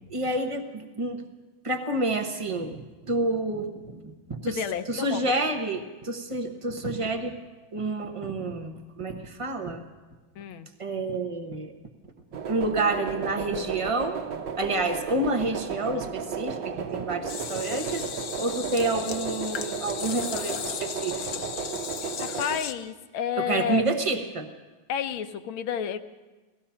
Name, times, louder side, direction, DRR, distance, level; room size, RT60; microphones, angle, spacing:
voice 1, 0.1-1.2 1.6-4.0 4.3-4.6 4.9-7.3 7.7-9.8 10.8-11.7 12.5-14.2 14.6-18.0 18.4-21.2 23.5-24.5, right 2 dB, 50° right, 4 dB, 0.4 m, -29 dB
voice 2, 4.5-5.5 10.4-10.7 22.2-23.9 24.9-26.0, left 8 dB, 80° left, 10 dB, 1.5 m, -31 dB
sound 1, 12.3-22.6, right 6 dB, 70° right, 1.5 m, -34 dB
sound 2, 17.3-22.7, left 8 dB, 65° left, 0.9 m, -36 dB
18.0 x 14.0 x 5.7 m, 1.2 s
omnidirectional pair, 2.2 m